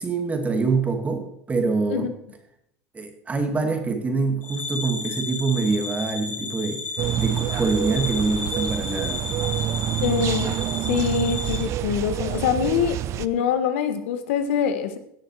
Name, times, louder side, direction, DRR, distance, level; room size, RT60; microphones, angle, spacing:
voice 1, 0.0-2.1 2.9-6.8 7.2-9.3, right 4 dB, 20° right, 6 dB, 2.1 m, -25 dB
sound 1, 4.4-11.6, left 3 dB, 25° left, 3.6 m, -33 dB
sound 2, 7.0-13.3, right 13 dB, 45° right, 0.5 m, -27 dB
voice 2, 10.0-10.6 10.9-15.0, left 7 dB, 75° left, 9 dB, 1.3 m, -24 dB
17.0 x 6.6 x 4.7 m, 0.72 s
supercardioid pair, 105°, 7 cm